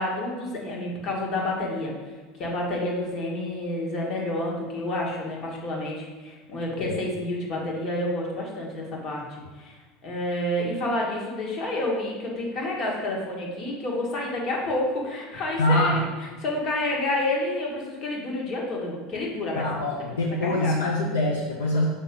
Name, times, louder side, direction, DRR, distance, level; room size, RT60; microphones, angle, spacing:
voice 1, 0.0-1.9 2.4-9.8 10.0-16.0 16.4-19.7 20.2-20.8, left 1 dB, 50° left, -2 dB, 1.8 m, -29 dB
voice 2, 15.6-16.1 19.6-21.9, left 1 dB, 90° left, -2 dB, 0.7 m, -24 dB
6.6 x 4.2 x 3.8 m, 1.3 s
hypercardioid pair, 85°, 0 cm